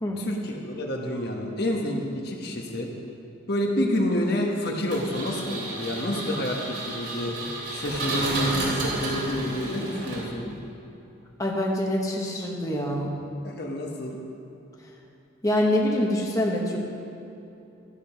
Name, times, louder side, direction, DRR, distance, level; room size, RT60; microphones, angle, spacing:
voice 1, 0.2-2.9 3.5-10.5 13.4-14.2, left 1 dB, 55° left, 0 dB, 1.4 m, -28 dB
Engine, 4.9-10.6, right 2 dB, 75° right, 3.3 m, -32 dB
voice 2, 11.4-13.2 15.4-16.8, left 1 dB, 15° left, -2 dB, 1.1 m, -25 dB
13.5 x 8.5 x 5.8 m, 2.9 s
head